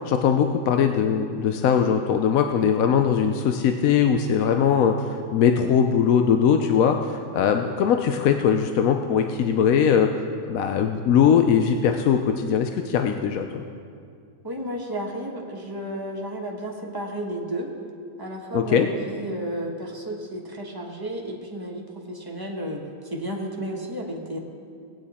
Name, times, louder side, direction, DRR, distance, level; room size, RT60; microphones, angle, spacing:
voice 1, 0.1-10.1 10.5-13.6 18.5-18.9, left 7 dB, 80° left, 5 dB, 1.0 m, -21 dB
voice 2, 14.4-17.7 18.2-24.4, right 1 dB, 15° right, -1 dB, 1.3 m, -32 dB
19.0 x 8.8 x 4.2 m, 2.3 s
omnidirectional pair, 1.5 m